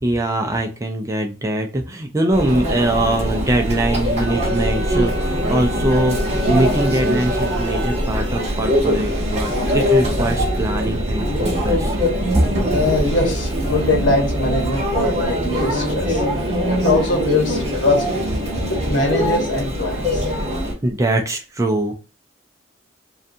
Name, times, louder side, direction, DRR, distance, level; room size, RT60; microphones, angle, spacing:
voice 1, 0.0-12.0 12.3-12.4 20.8-21.9, right 1 dB, 15° right, 3 dB, 0.3 m, -22 dB
Conversation / Chatter / Crowd, 2.3-20.7, equal, 35° right, 0.8 m, -22 dB
Wind instrument woodwind instrument, 4.1-8.0, equal, 20° left, 0.7 m, -31 dB
voice 2, 12.7-16.2 16.8-18.0 18.7-20.2, left 2 dB, 70° left, 2 dB, 0.9 m, -22 dB
2.5 x 2.3 x 2.6 m, 0.32 s
head